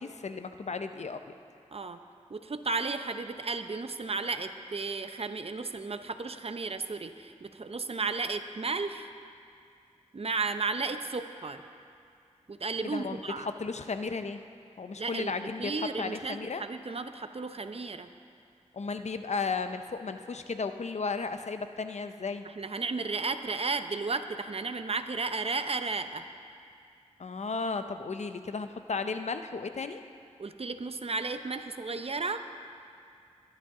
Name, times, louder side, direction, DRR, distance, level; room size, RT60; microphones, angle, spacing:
voice 1, 0.0-1.3 12.9-14.4 14.8-16.6 18.7-22.5 27.2-30.0, left 4 dB, 65° left, 8 dB, 0.7 m, -34 dB
voice 2, 2.3-9.1 10.1-11.6 12.5-13.5 15.0-15.3 15.6-18.1 22.4-26.2 30.4-32.4, right 4 dB, 50° right, 9 dB, 0.7 m, -34 dB
21.5 x 11.5 x 3.8 m, 2.4 s
wide cardioid pair, 65°, 13 cm